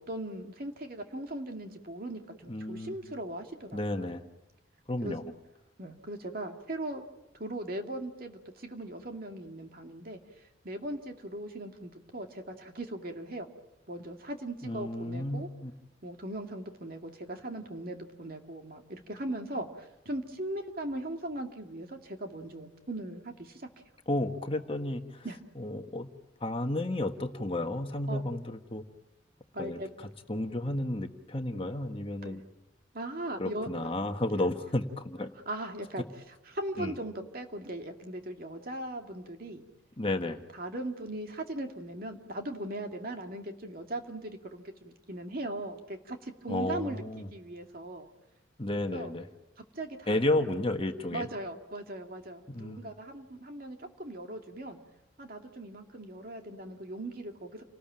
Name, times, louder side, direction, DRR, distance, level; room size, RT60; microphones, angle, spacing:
voice 1, 0.0-4.1 5.0-5.1 5.8-7.0 7.4-10.2 10.6-13.5 13.9-15.5 16.0-23.7 25.2-25.4 28.1-28.2 29.5-29.9 32.2-32.4 32.9-33.7 35.5-39.6 40.5-47.0 47.3-48.1 48.9-49.1 49.7-50.5 51.1-54.8 55.2-57.6, right 1 dB, 50° right, 4 dB, 2.5 m, -39 dB
voice 2, 2.5-2.9 3.7-4.3 4.9-5.3 14.6-15.7 24.1-25.2 25.6-26.1 26.4-28.8 29.6-32.4 33.4-35.3 36.8-36.9 40.0-40.4 46.5-47.3 48.6-49.3 50.1-51.3 52.5-52.9, left 1 dB, 30° left, 5 dB, 1.5 m, -32 dB
29.5 x 20.0 x 8.9 m, 0.99 s
head